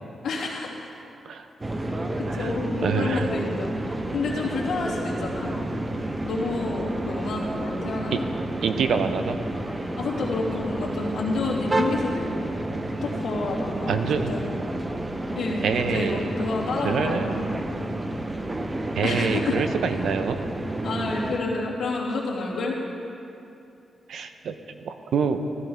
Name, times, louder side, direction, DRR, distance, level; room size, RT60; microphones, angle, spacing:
voice 1, 0.2-0.7 2.2-5.6 6.2-8.3 10.0-12.5 13.0-14.0 14.3-14.5 15.3-17.4 19.0-19.7 20.8-22.8, left 3 dB, 75° left, -6 dB, 2.9 m, -29 dB
sound 1, 1.6-21.4, right 1 dB, 20° right, 0.6 m, -30 dB
voice 2, 2.8-3.3 8.1-8.2 8.6-9.4 13.9-14.5 15.6-16.3 16.8-17.6 18.9-20.4 24.1-24.5 24.8-25.4, right 6 dB, 75° right, 8 dB, 0.7 m, -26 dB
15.0 x 14.0 x 3.4 m, 2.7 s
wide cardioid pair, 165°, 0 cm